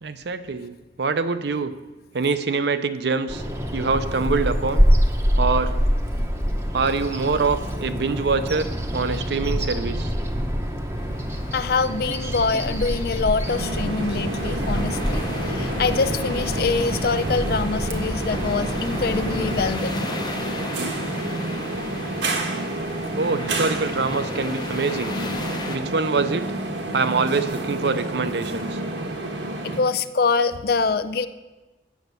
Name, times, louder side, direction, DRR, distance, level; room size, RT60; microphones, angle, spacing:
voice 1, 0.0-1.7 2.1-3.4 3.7-4.8 5.4-5.8 6.7-10.1 23.2-25.2 25.7-26.5 26.9-28.8, right 4 dB, 65° right, 11 dB, 0.6 m, -24 dB
Bird vocalization bird call bird song, 3.3-19.7, equal, 15° right, 0.8 m, -26 dB
sound 1, 11.0-25.8, left 2 dB, 25° left, 0.8 m, -36 dB
voice 2, 11.5-20.1 29.6-31.3, left 4 dB, 55° left, 13 dB, 0.4 m, -24 dB
sound 2, 13.4-29.8, right 2 dB, 85° right, 1.3 m, -29 dB
8.2 x 7.2 x 6.8 m, 1.1 s
head